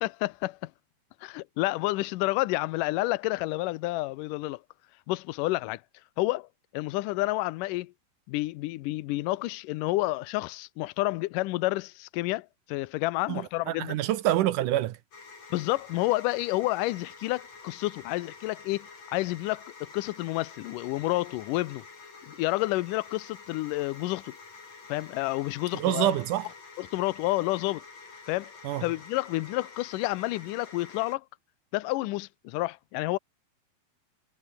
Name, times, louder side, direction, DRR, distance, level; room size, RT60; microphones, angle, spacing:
voice 1, 0.0-0.7 1.2-4.6 5.1-5.8 6.2-6.5 6.7-7.9 8.3-14.0 15.5-21.8 22.3-24.3 24.9-26.2 26.8-27.8 28.3-28.5 28.8-31.2 31.7-33.2, left 19 dB, 85° left, 1.9 m, -30 dB
voice 2, 13.3-15.0 25.7-26.5 28.6-28.8, right 13 dB, 70° right, 2.1 m, -26 dB
sound 1, 15.1-31.2, left 4 dB, 45° left, 6.2 m, -48 dB
omnidirectional pair, 4.5 m